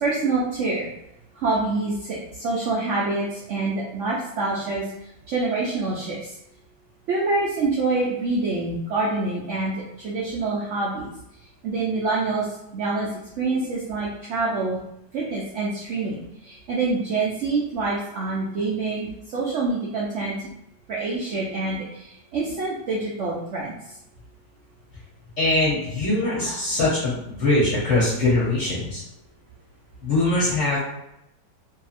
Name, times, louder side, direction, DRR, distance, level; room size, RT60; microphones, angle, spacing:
voice 1, 0.0-0.9 1.4-4.9 5.3-6.3 7.1-11.1 11.6-12.5 12.7-13.1 13.4-14.8 15.1-20.4 20.9-23.8, right 3 dB, 90° right, -5 dB, 0.6 m, -26 dB
voice 2, 25.4-29.0 30.0-30.8, left 2 dB, 55° left, -7 dB, 0.9 m, -22 dB
2.7 x 2.7 x 2.4 m, 0.82 s
omnidirectional pair, 1.9 m